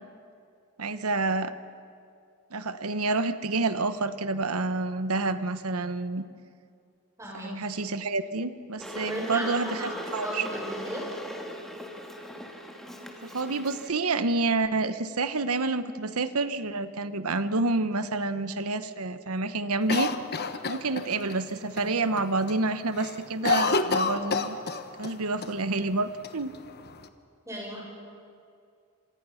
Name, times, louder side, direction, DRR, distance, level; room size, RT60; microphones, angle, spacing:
voice 1, 0.8-1.5 2.5-6.2 7.3-10.4 13.2-20.1 20.7-24.6 25.0-26.5, right 3 dB, 85° right, 11 dB, 1.1 m, -28 dB
voice 2, 7.2-7.5 9.0-11.0 27.5-27.8, equal, 15° right, -3 dB, 7.1 m, -35 dB
Water / Boiling, 8.8-13.9, equal, ahead, 2.2 m, -39 dB
Cough, 19.9-21.4 21.8-21.9 22.2-22.6 22.9-25.1 25.4-25.5 26.2-27.0, left 4 dB, 50° left, 1.2 m, -28 dB
27.5 x 26.0 x 5.8 m, 2.4 s
head